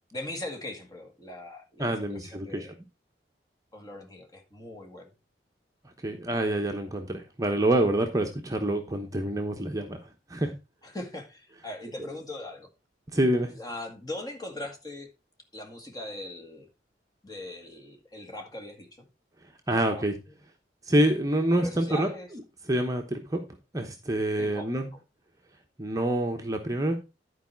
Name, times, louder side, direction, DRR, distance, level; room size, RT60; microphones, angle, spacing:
voice 1, 0.1-2.7 3.7-5.1 10.8-12.7 13.5-15.1 15.5-16.7 17.2-19.1 19.7-20.4 21.5-22.3 24.4-24.8, left 1 dB, 20° left, 1.9 m, -40 dB
voice 2, 1.8-2.7 6.0-10.0 10.3-10.5 13.1-13.5 19.7-20.1 20.9-22.1 22.7-23.4 23.7-24.9 25.8-27.0, right 1 dB, 20° right, 0.9 m, -26 dB
11.0 x 4.8 x 4.5 m
head